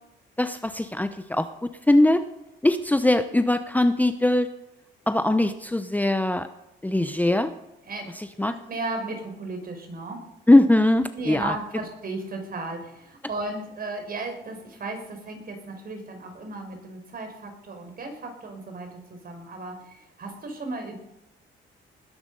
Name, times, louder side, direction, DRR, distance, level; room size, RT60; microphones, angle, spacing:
voice 1, 0.4-1.5 1.9-2.2 2.6-4.5 5.1-6.5 6.8-7.5 8.2-8.5 10.5-11.5, left 1 dB, 10° left, 10 dB, 0.8 m, -21 dB
voice 2, 8.4-10.2 11.1-21.0, right 2 dB, 50° right, 5 dB, 4.9 m, -35 dB
20.0 x 11.0 x 5.4 m, 0.91 s
cardioid pair, 90°, 20 cm